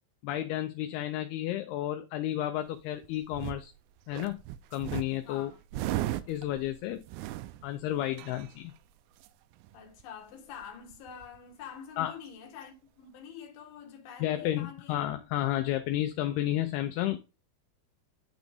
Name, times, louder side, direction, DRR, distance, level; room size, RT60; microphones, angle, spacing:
voice 1, 0.2-3.7 4.1-4.4 4.7-5.5 6.3-7.0 7.6-8.7 12.0-12.1 14.2-17.2, left 13 dB, 80° left, 2.5 m, -31 dB
sound 1, 2.7-3.7 4.1-8.8 9.2-9.3 9.5-10.0 10.3-10.4 10.6-11.4 12.3-12.4, right 15 dB, 85° right, 2.2 m, -37 dB
voice 2, 5.2-5.6 9.7-14.9, left 7 dB, 60° left, 2.7 m, -46 dB
10.5 x 4.0 x 3.5 m
omnidirectional pair, 5.0 m